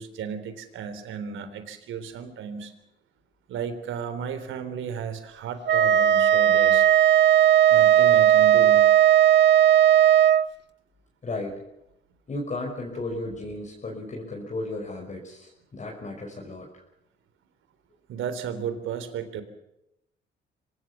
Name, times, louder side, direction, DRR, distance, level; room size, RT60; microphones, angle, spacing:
voice 1, 0.0-2.7 3.5-6.9 7.7-8.9 18.1-19.4, right 7 dB, 80° right, 10 dB, 3.6 m, -34 dB
Wind instrument woodwind instrument, 5.7-10.5, right 11 dB, 65° right, 0.8 m, -17 dB
voice 2, 11.2-11.6 12.3-16.7, left 2 dB, 40° left, -1 dB, 5.6 m, -34 dB
25.0 x 18.5 x 7.2 m, 0.85 s
cardioid pair, 90°, 20 cm